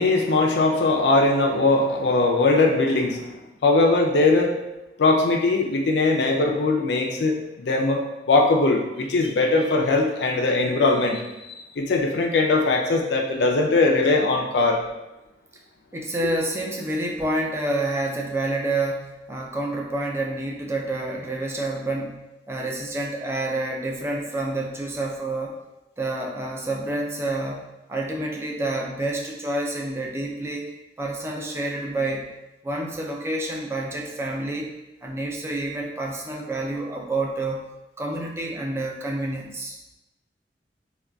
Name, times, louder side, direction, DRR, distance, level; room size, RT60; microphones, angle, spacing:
voice 1, 0.0-4.5 5.0-8.0 8.3-11.3 11.8-14.8, left 3 dB, 75° left, 2 dB, 0.4 m, -20 dB
voice 2, 15.9-25.5 26.0-32.3 32.6-34.7 35.0-37.7 38.0-39.7, right 2 dB, 15° right, -1 dB, 0.4 m, -28 dB
3.7 x 2.3 x 2.3 m, 0.99 s
head